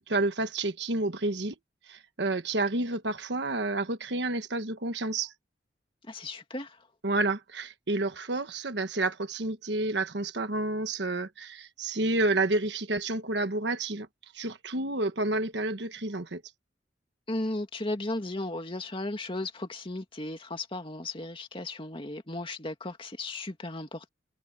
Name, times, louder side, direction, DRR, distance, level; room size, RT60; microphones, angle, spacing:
voice 1, 0.0-1.5 1.9-5.3 7.0-14.1 14.3-16.4, right 2 dB, 70° right, 1.4 m, -30 dB
voice 2, 6.1-6.8 17.3-24.1, left 2 dB, 30° left, 2.5 m, -35 dB
head